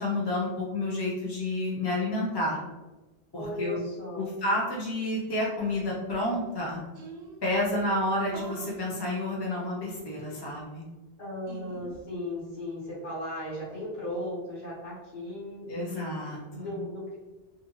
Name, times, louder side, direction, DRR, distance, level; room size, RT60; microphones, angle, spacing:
voice 1, 0.0-2.6 3.3-3.8 4.2-6.8 7.4-10.8 15.7-16.7, left 1 dB, 30° left, -4 dB, 0.5 m, -30 dB
voice 2, 3.3-4.2 11.2-16.0 16.5-17.2, left 1 dB, 50° left, -7 dB, 1.2 m, -36 dB
sound 1, 6.3-6.4 6.6-6.7 6.9-7.5 8.3-8.9 10.0-10.8 11.5-12.0, right 3 dB, 55° right, 0.5 m, -45 dB
2.6 x 2.4 x 2.7 m, 1.1 s
omnidirectional pair, 1.1 m